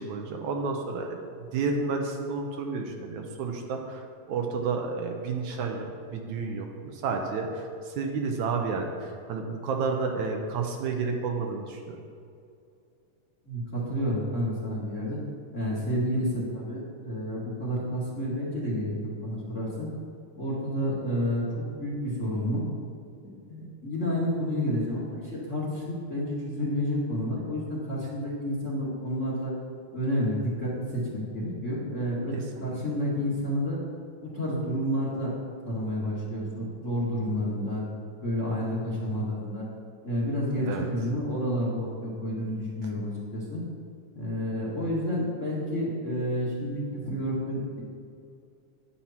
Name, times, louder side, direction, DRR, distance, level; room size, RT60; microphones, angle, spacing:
voice 1, 0.0-12.0 32.3-32.7 40.7-40.9, right 4 dB, 75° right, 2 dB, 2.2 m, -31 dB
voice 2, 13.5-15.2 15.5-19.9 20.4-21.4 21.8-22.6 23.5-29.5 29.9-32.3 32.6-33.8 34.2-35.3 35.7-37.8 38.2-39.7 40.0-43.6 44.2-47.8, equal, 30° left, -5 dB, 1.9 m, -30 dB
10.0 x 10.0 x 4.4 m, 2.5 s
omnidirectional pair, 3.6 m